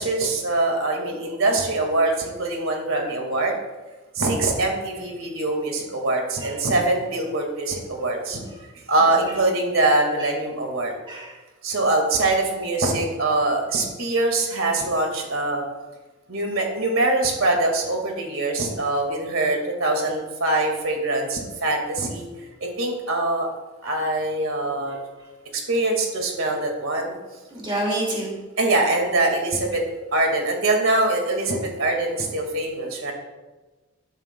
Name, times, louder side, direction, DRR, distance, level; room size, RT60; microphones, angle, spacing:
voice 1, 0.0-3.6 4.2-8.4 8.9-10.9 11.6-15.6 16.3-22.3 22.6-23.5 23.8-25.0 25.5-27.2 28.6-29.9 30.1-33.1, right 2 dB, 75° right, 2 dB, 1.9 m, -23 dB
voice 2, 27.5-28.3, right 1 dB, 25° right, -2 dB, 2.3 m, -28 dB
11.5 x 10.5 x 2.3 m, 1.2 s
head